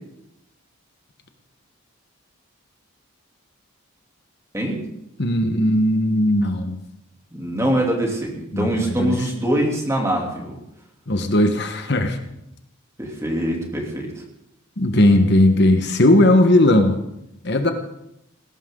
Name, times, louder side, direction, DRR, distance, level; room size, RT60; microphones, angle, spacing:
voice 1, 5.2-6.8 8.5-9.2 11.1-12.2 14.8-17.0 17.4-17.7, left 1 dB, 50° left, 6 dB, 1.3 m, -17 dB
voice 2, 7.3-10.6 13.0-14.1, right 1 dB, 15° right, 0 dB, 3.0 m, -23 dB
20.0 x 17.0 x 3.9 m, 0.83 s
head